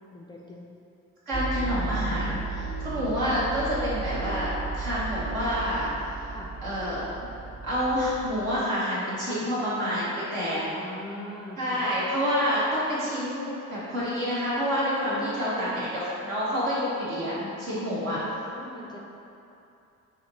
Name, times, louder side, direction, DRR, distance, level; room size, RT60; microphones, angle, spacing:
voice 1, 0.1-0.7 6.3-6.5 9.2-9.5 10.7-11.9 15.0-15.9 17.7-19.0, left 1 dB, 10° left, -3 dB, 0.3 m, -41 dB
sound 1, 1.3-8.6, right 4 dB, 45° right, 1.5 m, -34 dB
voice 2, 1.3-5.9 6.6-7.0 7.6-10.6 11.6-18.2, equal, 80° right, -9 dB, 1.2 m, -28 dB
6.2 x 2.8 x 2.6 m, 2.8 s
figure-of-eight pair, 45°, 41 cm